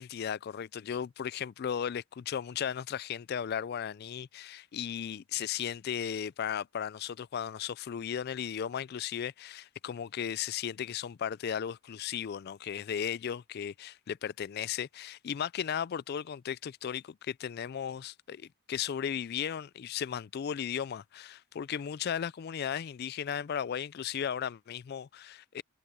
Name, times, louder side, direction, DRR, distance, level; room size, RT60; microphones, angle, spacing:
voice 1, 0.0-25.6, left 8 dB, 45° left, 0.3 m, -36 dB
head